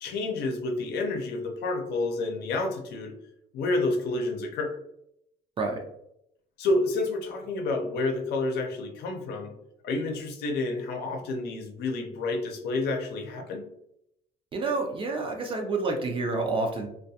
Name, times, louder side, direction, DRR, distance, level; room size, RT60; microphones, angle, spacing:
voice 1, 0.0-3.1 3.5-4.8 6.6-9.5 9.8-13.6, left 2 dB, 75° left, 2 dB, 0.6 m, -29 dB
voice 2, 14.5-16.9, right 3 dB, 30° right, 2 dB, 0.4 m, -28 dB
2.3 x 2.2 x 2.7 m, 0.77 s
cardioid pair, 110°, 17 cm